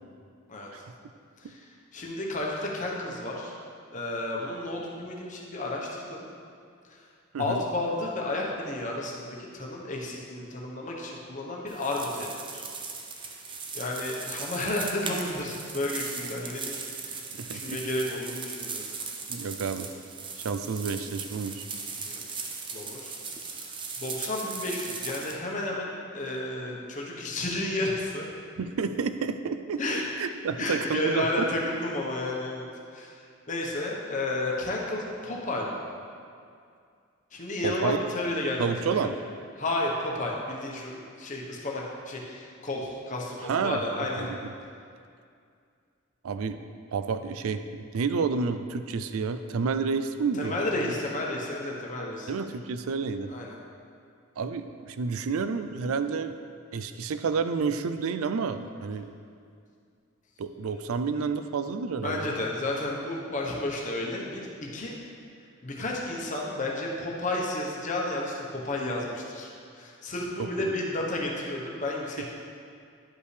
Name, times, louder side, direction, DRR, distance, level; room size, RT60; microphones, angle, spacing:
voice 1, 1.4-3.5 3.9-6.3 6.9-7.0 7.4-12.6 13.2-13.3 13.7-18.9 22.0-23.2 23.5-28.3 29.8-30.0 30.6-32.7 32.9-35.8 37.3-39.1 39.6-44.3 50.3-52.3 53.3-53.5 62.0-65.0 65.6-72.3, left 1 dB, 35° left, -2 dB, 1.0 m, -32 dB
sound 1, 11.7-25.4, right 4 dB, 25° right, 0.5 m, -38 dB
voice 2, 17.4-17.8 19.3-19.9 20.4-21.6 28.6-31.5 37.6-38.0 38.6-39.2 43.4-43.8 44.2-44.4 46.2-46.6 46.9-47.6 47.9-50.9 52.3-53.3 54.4-56.4 56.7-59.1 60.4-62.4 70.6-70.7, right 5 dB, 85° right, 9 dB, 0.4 m, -30 dB
11.0 x 5.4 x 3.3 m, 2.3 s
head